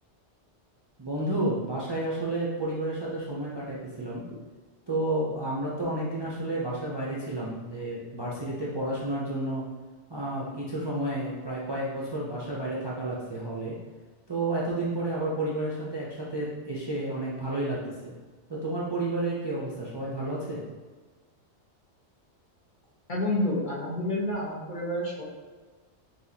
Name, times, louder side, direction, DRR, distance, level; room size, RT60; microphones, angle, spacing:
voice 1, 1.0-4.2 4.9-9.6 10.1-13.8 14.3-18.1 18.5-20.6, right 1 dB, 30° right, -6 dB, 0.5 m, -31 dB
voice 2, 23.1-25.2, left 1 dB, 45° left, -6 dB, 1.2 m, -29 dB
5.8 x 2.8 x 2.8 m, 1.4 s
omnidirectional pair, 1.2 m